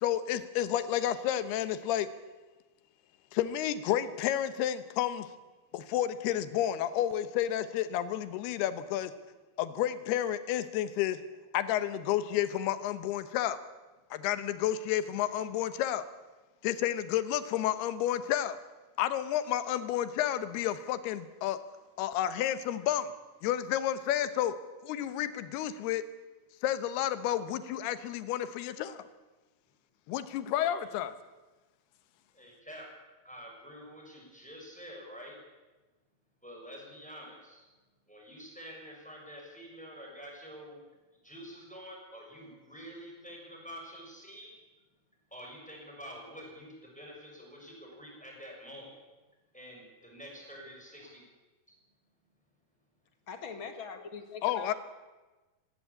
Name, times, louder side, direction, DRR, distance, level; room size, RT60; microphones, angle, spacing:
voice 1, 0.0-2.1 3.3-5.3 5.7-9.1 9.6-11.2 11.5-13.6 14.1-16.1 16.6-18.6 19.0-21.6 22.0-23.1 23.4-24.5 24.8-26.0 26.6-29.1 30.1-31.1 54.4-54.7, left 11 dB, 90° left, 12 dB, 3.0 m, -31 dB
voice 2, 32.3-32.9 33.2-35.4 36.4-37.7 38.1-40.8 41.2-44.5 45.3-49.0 49.5-51.2, equal, ahead, -1 dB, 6.2 m, -47 dB
voice 3, 53.3-54.7, left 5 dB, 45° left, 7 dB, 1.7 m, -42 dB
18.5 x 18.0 x 8.5 m, 1.2 s
omnidirectional pair, 4.5 m